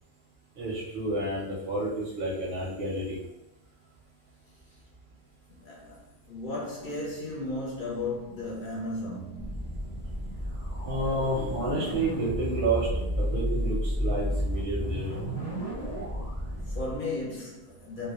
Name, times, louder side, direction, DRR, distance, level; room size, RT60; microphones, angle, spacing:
voice 1, 0.6-3.2 10.8-12.9 13.2-15.1, right 2 dB, 55° right, 0.6 m, -30 dB
voice 2, 5.5-6.0 6.3-9.7 16.6-18.1, left 2 dB, 50° left, 0.7 m, -35 dB
sound 1, 9.3-17.0, equal, 15° left, 0.9 m, -32 dB
2.1 x 2.1 x 2.8 m
omnidirectional pair, 1.2 m